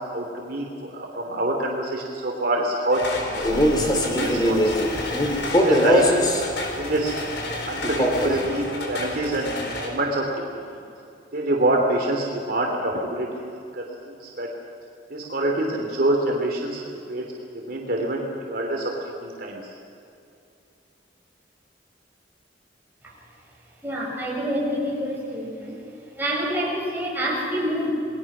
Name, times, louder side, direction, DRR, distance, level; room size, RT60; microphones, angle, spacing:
voice 1, 0.1-5.0 5.5-6.1 6.8-7.1 7.6-10.2 10.5-10.8 11.3-14.5 15.1-16.8 17.1-17.2 17.5-19.6, right 1 dB, 55° right, 0 dB, 3.1 m, -26 dB
sound 1, 2.9-9.9, left 2 dB, 70° left, 4.4 m, -32 dB
Male speech man speaking, 3.3-6.5 7.8-8.5, equal, 25° left, 2.8 m, -21 dB
voice 2, 23.8-25.8 26.2-27.9, equal, 10° right, -4 dB, 6.9 m, -27 dB
29.5 x 20.5 x 6.2 m, 2.7 s
head